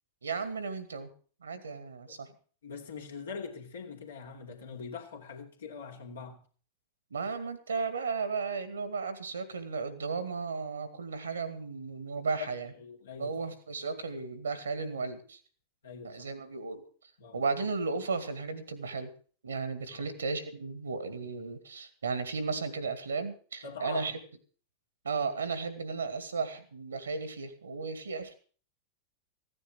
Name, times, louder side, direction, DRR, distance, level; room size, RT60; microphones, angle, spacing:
voice 1, 0.2-1.1 1.4-2.3 7.1-12.7 13.2-15.4 16.0-16.8 17.3-19.1 19.4-24.2 25.0-28.3, right 4 dB, 70° right, 2.0 m, -35 dB
voice 2, 2.6-6.4 12.8-13.3 15.8-16.2 17.2-17.4 19.9-20.1 23.6-24.1, left 5 dB, 65° left, 2.6 m, -43 dB
15.5 x 9.9 x 6.2 m
figure-of-eight pair, 90°, 0 cm